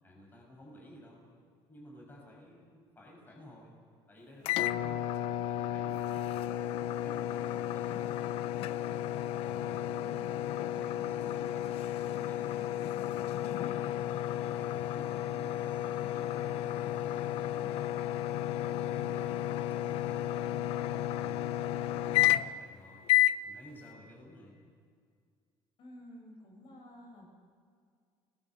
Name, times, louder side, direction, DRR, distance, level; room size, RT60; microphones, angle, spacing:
voice 1, 0.0-1.2 1.7-3.7 4.1-6.5 7.0-9.0 9.4-11.7 12.1-14.0 14.3-17.9 19.9-21.5 21.9-23.1 23.4-24.6, equal, 20° left, -1 dB, 6.3 m, -53 dB
sound 1, 4.4-22.7 23.1-23.4, left 13 dB, 75° left, 0.6 m, -32 dB
voice 2, 25.8-27.3, equal, 55° left, 0 dB, 6.4 m, -51 dB
30.0 x 20.0 x 5.8 m, 2.1 s
cardioid pair, 145°, 10 cm